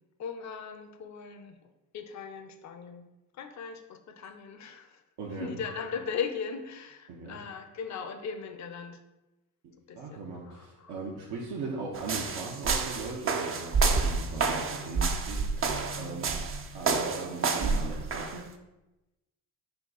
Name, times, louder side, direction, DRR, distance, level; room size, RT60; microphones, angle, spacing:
voice 1, 0.2-1.6 1.9-3.1 3.3-9.0 9.9-10.9, left 6 dB, 40° left, 7 dB, 0.6 m, -38 dB
voice 2, 5.2-5.6 7.1-7.4 9.6-16.3 16.7-18.5, right 3 dB, 65° right, -3 dB, 0.8 m, -39 dB
sound 1, 11.9-18.4, right 4 dB, 30° right, 0.5 m, -29 dB
5.6 x 2.3 x 3.8 m, 1.0 s
supercardioid pair, 50°, 43 cm